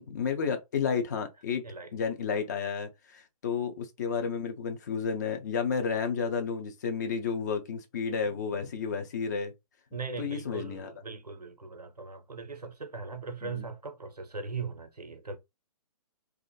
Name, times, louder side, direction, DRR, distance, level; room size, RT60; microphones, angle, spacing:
voice 1, 0.0-1.7 1.9-9.5 10.2-10.9 13.4-13.6, left 6 dB, 30° left, 0.4 m, -31 dB
voice 2, 9.9-15.4, right 4 dB, 85° right, 0.6 m, -39 dB
2.4 x 2.4 x 2.3 m
figure-of-eight pair, 130°, 20 cm